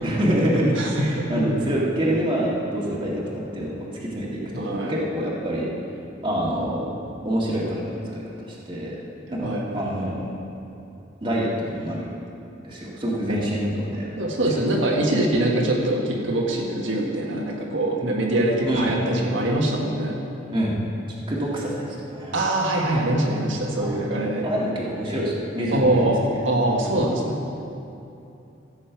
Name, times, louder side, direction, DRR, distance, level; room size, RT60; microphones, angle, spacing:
voice 1, 0.0-3.7 4.0-5.7 6.2-6.8 7.2-9.0 9.3-10.3 11.2-12.1 12.6-14.1 14.5-14.7 18.7-18.9 20.5-20.8 21.3-22.3 23.8-24.0 24.4-26.1 26.7-26.9, right 1 dB, 25° right, -5 dB, 1.9 m, -26 dB
voice 2, 0.7-1.1 4.5-4.9 9.4-10.0 13.3-13.4 14.2-20.1 22.3-24.5 25.7-26.2 26.4-27.4, right 1 dB, 90° right, -2 dB, 1.6 m, -23 dB
15.0 x 7.7 x 4.6 m, 2.7 s
head